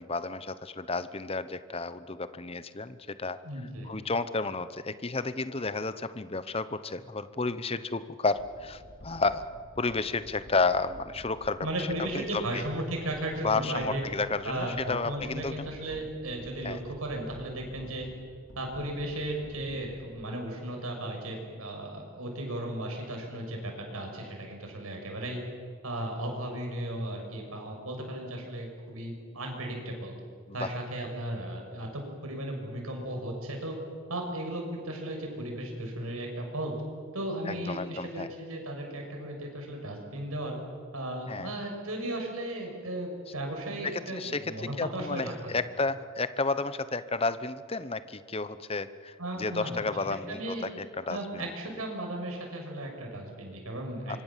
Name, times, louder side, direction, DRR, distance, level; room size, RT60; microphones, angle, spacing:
voice 1, 0.0-3.4 3.8-9.4 9.8-11.9 12.1-12.6 13.4-15.7 16.6-16.8 30.5-30.7 37.5-38.3 41.3-41.5 43.9-44.4 44.8-51.4 54.1-54.2, left 3 dB, 25° left, 13 dB, 0.9 m, -32 dB
voice 2, 3.4-3.9 11.6-14.0 14.4-18.0 18.5-25.4 25.8-30.1 30.5-33.7 34.1-36.7 37.1-40.6 40.9-45.6 49.2-49.9 50.3-50.7 51.1-54.2, right 1 dB, 85° right, 1 dB, 6.6 m, -35 dB
sound 1, 8.4-20.5, equal, 60° left, 5.2 m, -50 dB
25.5 x 24.5 x 7.5 m, 2.1 s
head